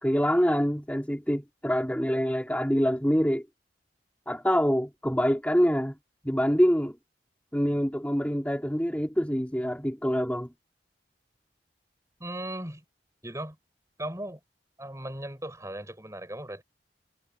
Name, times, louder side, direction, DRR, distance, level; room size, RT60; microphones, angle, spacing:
voice 1, 0.0-3.4 4.3-6.0 6.2-7.0 7.5-10.5, equal, 10° left, 4.2 m, -25 dB
voice 2, 12.2-12.8 13.2-13.6 14.0-14.4 14.8-16.6, right 1 dB, 15° right, 6.3 m, -37 dB
head